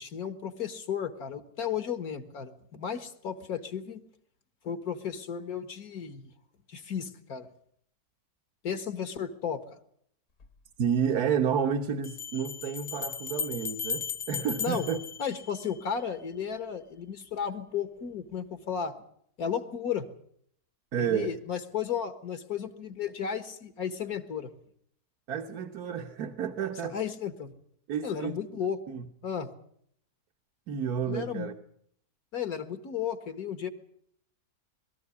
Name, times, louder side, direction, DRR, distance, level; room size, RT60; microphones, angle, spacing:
voice 1, 0.0-4.1 4.6-6.3 6.7-7.5 8.6-9.6 14.6-14.9 15.2-18.9 19.4-20.1 21.0-24.5 26.9-27.5 28.0-28.8 29.2-29.5 31.1-31.5 32.3-33.7, left 8 dB, 75° left, 10 dB, 2.0 m, -34 dB
sound 1, 10.4-10.5 12.0-16.0, left 6 dB, 55° left, 1.4 m, -36 dB
voice 2, 10.8-15.0 20.9-21.3 25.3-27.0 27.9-28.4 28.9-29.1 30.7-31.5, right 7 dB, 80° right, 4 dB, 1.7 m, -30 dB
22.0 x 13.5 x 9.6 m, 0.68 s
omnidirectional pair, 1.6 m